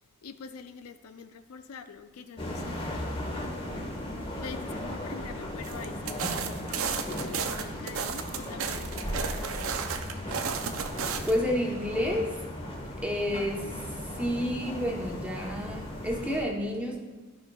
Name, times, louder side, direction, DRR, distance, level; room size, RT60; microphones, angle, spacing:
voice 1, 0.2-4.1 4.4-10.2, left 5 dB, 85° left, 9 dB, 0.4 m, -46 dB
sound 1, 2.4-16.4, left 1 dB, 25° left, 1.1 m, -37 dB
sound 2, 5.6-11.4, right 6 dB, 65° right, 0.5 m, -34 dB
voice 2, 11.2-12.3 13.0-17.0, equal, 5° right, -1 dB, 0.9 m, -30 dB
13.0 x 5.3 x 2.3 m, 1.3 s
head